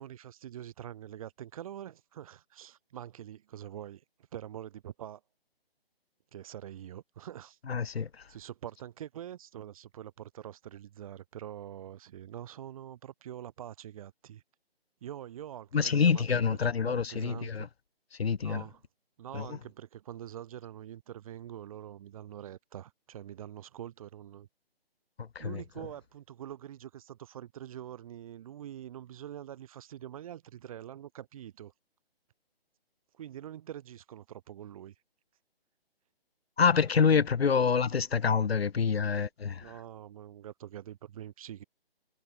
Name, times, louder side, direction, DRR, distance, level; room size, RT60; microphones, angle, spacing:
voice 1, 0.0-4.0 4.3-5.2 6.3-7.6 7.9-14.4 15.0-17.7 18.4-18.8 19.2-24.5 25.4-31.7 33.1-34.9 39.6-41.6, right 11 dB, 35° right, 4.4 m, -45 dB
voice 2, 7.7-8.1 15.7-17.7 18.2-18.6 19.3-19.5 25.3-25.6 36.6-39.7, left 6 dB, 80° left, 1.0 m, -26 dB
hypercardioid pair, 155°, 31 cm